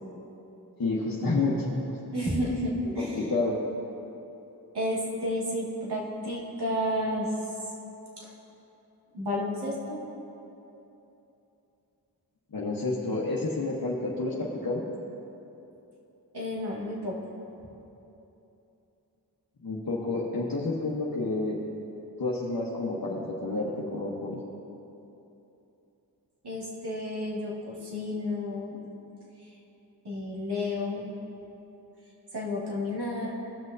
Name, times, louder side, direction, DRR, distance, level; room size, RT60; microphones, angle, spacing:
voice 1, 0.8-2.0 3.0-3.6 12.5-14.8 19.6-21.6 22.2-24.3, left 2 dB, 60° left, -5 dB, 1.1 m, -29 dB
voice 2, 2.1-3.4 4.7-7.3 8.2-8.3 9.1-10.0 16.3-17.2 26.4-28.8 30.0-31.0 32.3-33.3, left 1 dB, 75° right, -5 dB, 2.1 m, -31 dB
18.0 x 6.3 x 2.7 m, 3.0 s
cardioid pair, 50°, 40 cm